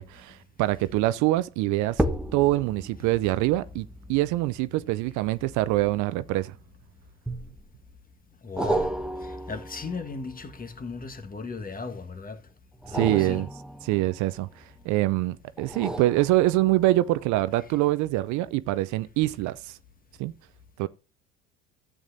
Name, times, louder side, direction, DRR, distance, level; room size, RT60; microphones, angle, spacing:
voice 1, 0.0-2.0 2.3-6.5 12.9-13.5 13.8-14.5 14.9-19.7 20.2-20.3 20.8-20.9, right 17 dB, 60° right, 0.6 m, -25 dB
sound 1, 2.0-6.6 7.3-7.9 8.6-11.5 12.7-14.8 15.6-17.0 17.5-17.6, right 1 dB, ahead, 1.1 m, -34 dB
voice 2, 8.4-8.9 9.2-12.4 12.9-13.5 17.6-17.7, left 4 dB, 25° left, 1.5 m, -36 dB
13.5 x 8.4 x 2.7 m
hypercardioid pair, 60°, 34 cm